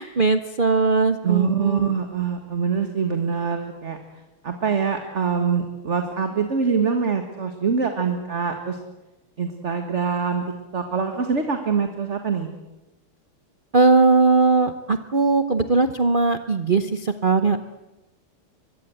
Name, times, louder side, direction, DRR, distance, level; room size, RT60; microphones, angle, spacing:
voice 1, 0.0-1.9 13.7-17.6, right 4 dB, 60° right, 9 dB, 0.5 m, -19 dB
voice 2, 1.2-4.0 4.4-8.8 9.4-10.4 10.7-12.5, right 6 dB, 35° right, 6 dB, 1.9 m, -24 dB
24.0 x 22.0 x 7.9 m, 1.0 s
omnidirectional pair, 2.4 m